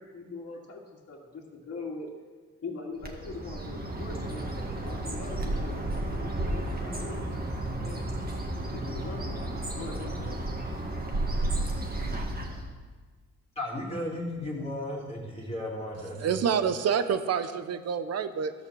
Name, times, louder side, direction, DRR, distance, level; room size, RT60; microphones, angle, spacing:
voice 1, 0.0-2.1 2.6-8.0 8.6-10.4, left 3 dB, 50° left, -2 dB, 2.1 m, -42 dB
Bird, 3.0-12.7, right 1 dB, 30° right, 1.8 m, -32 dB
voice 2, 13.6-16.5, left 1 dB, 20° left, -4 dB, 2.6 m, -35 dB
voice 3, 16.2-18.5, right 7 dB, 55° right, 11 dB, 0.9 m, -27 dB
14.0 x 5.8 x 7.1 m, 1.4 s
cardioid pair, 90°, 30 cm